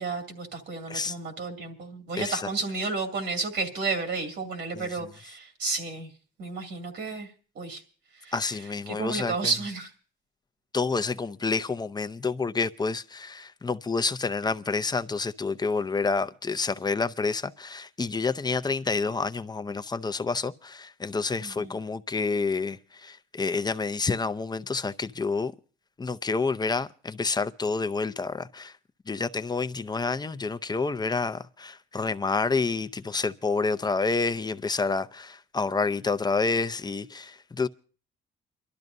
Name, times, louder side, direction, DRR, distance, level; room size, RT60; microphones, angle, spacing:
voice 1, 0.0-6.1 6.4-7.3 7.6-7.8 8.2-8.3 8.9-9.9 21.4-21.8, right 4 dB, 70° right, 2.5 m, -32 dB
voice 2, 2.2-2.5 4.8-4.9 8.3-9.5 10.7-25.5 26.0-28.7 29.1-37.7, left 4 dB, 20° left, 0.6 m, -28 dB
29.0 x 12.0 x 2.7 m
cardioid pair, 90°, 20 cm